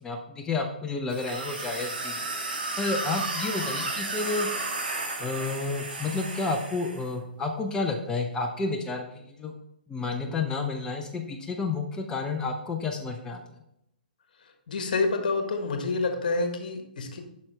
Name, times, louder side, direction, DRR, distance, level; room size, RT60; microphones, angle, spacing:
voice 1, 0.0-2.2 2.8-4.5 5.2-9.5 9.9-13.4, left 3 dB, 15° left, 2 dB, 0.7 m, -30 dB
sound 1, 1.1-7.1, right 2 dB, 80° right, 1.7 m, -33 dB
voice 2, 14.7-17.2, left 3 dB, 60° left, 5 dB, 1.4 m, -28 dB
8.5 x 6.1 x 3.3 m, 0.79 s
figure-of-eight pair, 125°, 5 cm